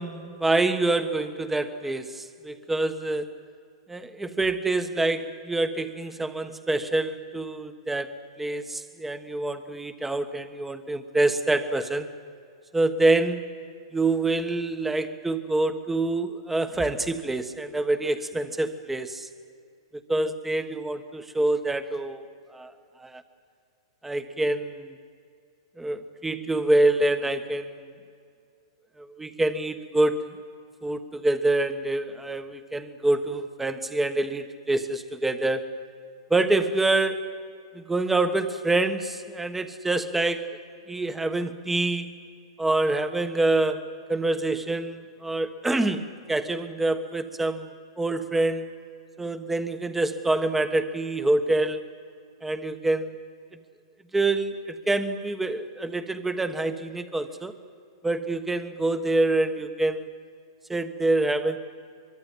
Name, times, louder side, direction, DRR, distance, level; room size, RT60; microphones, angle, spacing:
voice 1, 0.0-3.3 3.9-8.1 8.4-12.1 12.7-13.5 13.9-19.3 20.1-22.2 22.5-22.7 23.0-23.2 24.0-24.9 25.8-27.7 29.0-30.2 30.8-35.7 36.3-37.3 37.7-40.5 40.9-42.1 42.6-47.7 48.0-48.7 49.2-51.8 52.4-53.2 54.1-57.5 58.0-60.1 60.7-61.6, right 2 dB, 10° right, 9 dB, 1.4 m, -26 dB
24.0 x 24.0 x 7.5 m, 2.3 s
hypercardioid pair, 120°, 3 cm